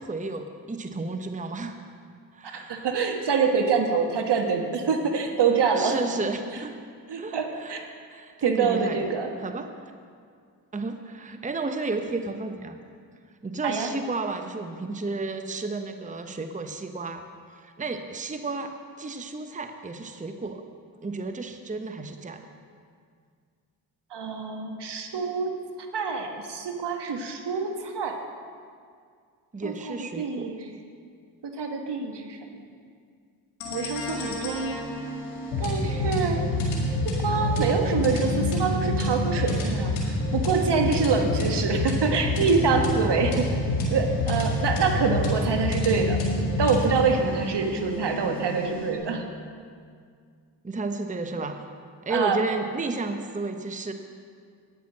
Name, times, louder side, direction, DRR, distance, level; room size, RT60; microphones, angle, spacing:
voice 1, 0.0-1.8 2.3-2.9 5.7-6.7 7.2-7.8 8.1-9.1 9.4-9.7 10.7-12.8 13.4-17.2 17.5-20.6 21.0-22.4 29.5-30.5 50.6-51.6 52.0-53.9, right 3 dB, 15° right, 6 dB, 0.8 m, -32 dB
voice 2, 2.5-6.0 7.1-7.8 8.4-9.3 13.6-13.9 24.1-25.5 25.9-28.2 29.6-30.6 31.6-32.6 33.7-34.9 35.6-36.4 37.0-43.5 43.9-46.2 46.6-49.2 52.1-52.4, right 5 dB, 60° right, 4 dB, 1.4 m, -26 dB
sound 1, 33.6-49.0, left 1 dB, 90° left, 2.1 m, -27 dB
9.2 x 8.9 x 6.2 m, 2.1 s
supercardioid pair, 45°, 46 cm